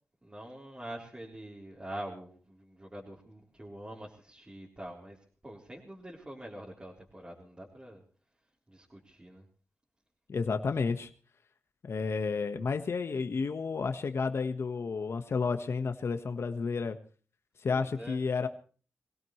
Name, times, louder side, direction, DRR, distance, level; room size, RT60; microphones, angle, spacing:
voice 1, 0.2-5.2 5.4-8.0 8.7-9.4 17.7-18.2, right 1 dB, 20° right, -4 dB, 3.9 m, -45 dB
voice 2, 10.3-11.1 11.8-17.0 17.6-18.5, left 4 dB, 65° left, 7 dB, 1.4 m, -31 dB
23.5 x 17.5 x 3.2 m, 0.39 s
cardioid pair, 75°, 5 cm